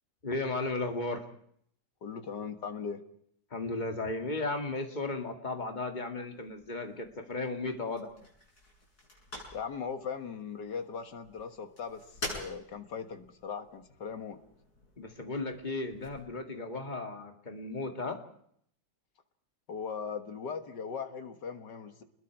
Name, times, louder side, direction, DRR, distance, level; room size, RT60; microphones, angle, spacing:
voice 1, 0.2-1.2 3.5-8.1 15.0-18.2, left 2 dB, 25° left, 4 dB, 2.2 m, -35 dB
voice 2, 2.0-3.0 9.5-12.0 12.3-14.4 19.7-22.0, left 6 dB, 90° left, 7 dB, 2.2 m, -39 dB
sound 1, 6.3-16.2, left 2 dB, 65° left, 7.5 m, -48 dB
29.0 x 21.0 x 4.6 m, 0.67 s
omnidirectional pair, 1.8 m